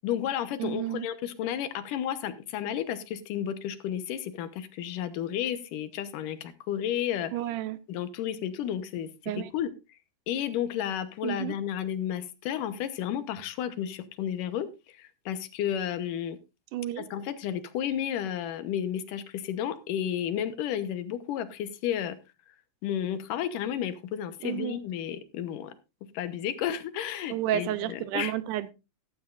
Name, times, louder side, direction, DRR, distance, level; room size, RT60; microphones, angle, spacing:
voice 1, 0.0-7.3 7.9-9.7 10.3-14.7 15.0-16.4 17.0-22.2 22.8-25.7 26.1-28.3, left 10 dB, 90° left, 11 dB, 2.7 m, -32 dB
voice 2, 0.6-1.1 7.3-7.8 9.3-9.5 11.2-11.5 16.7-17.1 24.4-24.8 27.3-28.7, right 13 dB, 80° right, 15 dB, 2.3 m, -31 dB
14.5 x 13.0 x 2.5 m, 0.27 s
omnidirectional pair, 3.6 m